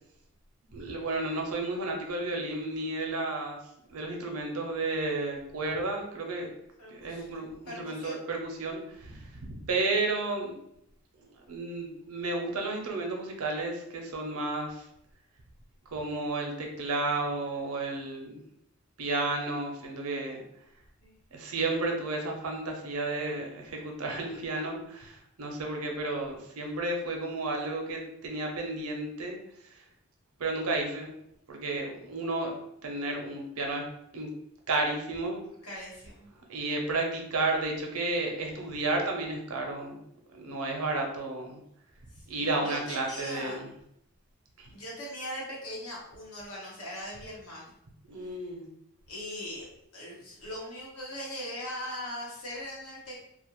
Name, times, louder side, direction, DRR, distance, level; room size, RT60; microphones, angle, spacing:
voice 1, 0.7-3.6 3.9-6.5 6.9-9.3 9.6-10.5 11.5-14.9 15.9-18.4 19.0-20.4 21.3-29.4 29.6-29.8 30.4-31.1 31.5-32.5 32.8-33.8 34.1-34.3 34.7-35.4 36.5-40.0 40.3-41.6 42.3-43.7 44.6-44.7 48.1-48.7, right 2 dB, 80° right, 1 dB, 0.6 m, -32 dB
voice 2, 6.8-8.2 21.0-21.2 35.3-36.3 42.1-43.6 44.7-47.7 48.2-48.4 49.1-49.7 49.9-53.2, left 1 dB, 80° left, -5 dB, 1.0 m, -40 dB
2.4 x 2.1 x 2.9 m, 0.76 s
head